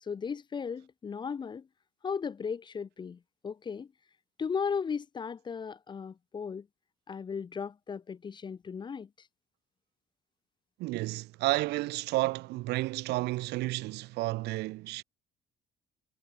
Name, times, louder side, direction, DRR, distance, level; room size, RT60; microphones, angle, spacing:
voice 1, 0.0-1.7 2.0-3.9 4.4-6.7 7.1-9.3, left 6 dB, 25° left, 0.5 m, -36 dB
voice 2, 10.8-15.0, right 19 dB, 80° right, 0.7 m, -31 dB
cardioid pair, 110°, 17 cm